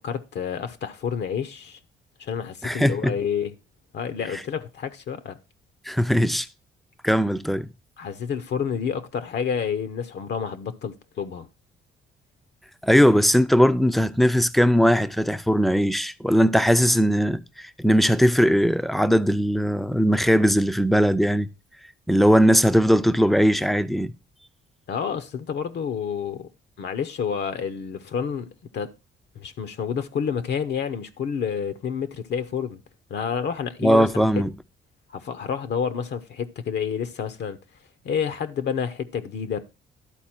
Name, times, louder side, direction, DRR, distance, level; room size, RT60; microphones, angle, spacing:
voice 1, 0.0-1.8 2.2-3.5 3.9-5.4 8.0-11.5 24.9-26.5 26.8-28.5 28.7-28.9 29.4-32.8 33.1-34.2 35.1-37.6 38.0-39.7, left 7 dB, 60° left, 0.7 m, -29 dB
voice 2, 2.6-3.1 5.9-6.5 7.0-7.7 12.8-21.5 22.1-24.1 33.8-34.5, equal, ahead, 0.4 m, -19 dB
11.5 x 4.2 x 4.2 m
cardioid pair, 90°, 20 cm